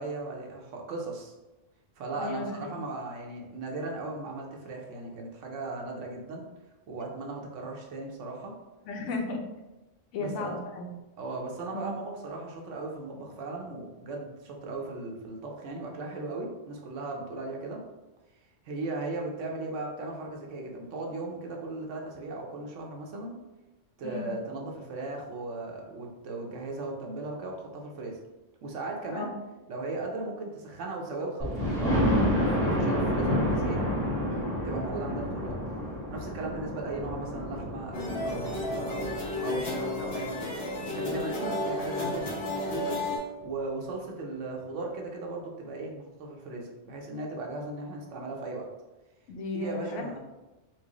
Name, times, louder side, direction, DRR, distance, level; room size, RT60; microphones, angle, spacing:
voice 1, 0.0-1.3 2.0-6.5 6.9-8.5 10.2-10.6 11.2-17.8 18.6-23.4 24.0-28.2 28.6-29.3 29.7-33.8 34.6-35.6 36.1-40.5 40.9-43.0 43.4-48.7 49.5-50.2, right 2 dB, 80° right, 0 dB, 1.0 m, -37 dB
voice 2, 2.2-2.8 8.9-9.4 10.1-10.9 11.7-11.9 24.0-24.4 29.1-29.4 35.1-35.2 41.3-41.6 49.3-50.2, left 3 dB, 85° left, 2 dB, 0.9 m, -35 dB
Thunder, 31.4-41.1 41.7-41.8 42.2-42.3 42.5-42.6, equal, 5° left, 0.9 m, -30 dB
sound 1, 37.9-43.2, left 2 dB, 60° left, 1.0 m, -32 dB
4.5 x 2.0 x 2.9 m, 1.1 s
omnidirectional pair, 1.2 m